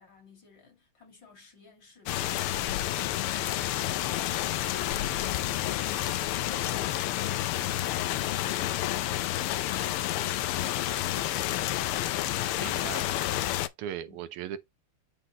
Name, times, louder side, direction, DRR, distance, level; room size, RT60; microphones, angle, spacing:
voice 1, 0.0-7.4 14.0-14.2, left 5 dB, 55° left, 3.0 m, -56 dB
sound 1, 2.1-13.7, left 13 dB, 85° left, 1.5 m, -30 dB
voice 2, 12.2-13.0 13.5-14.6, right 10 dB, 90° right, 1.7 m, -39 dB
9.0 x 4.0 x 2.9 m
omnidirectional pair, 2.4 m